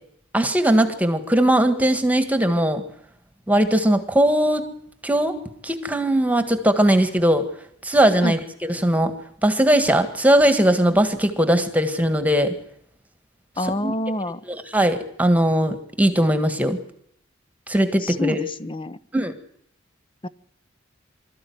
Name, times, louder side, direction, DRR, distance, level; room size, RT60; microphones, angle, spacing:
voice 1, 0.3-2.8 3.5-4.7 5.0-5.4 5.6-7.4 7.8-9.1 9.4-12.5 13.8-13.9 14.5-16.8 17.7-18.4 19.1-19.3, right 1 dB, 10° right, 8 dB, 1.7 m, -19 dB
voice 2, 13.6-14.4 18.0-19.0 20.2-20.3, left 1 dB, 25° left, 15 dB, 0.8 m, -27 dB
25.0 x 14.0 x 9.5 m, 0.71 s
head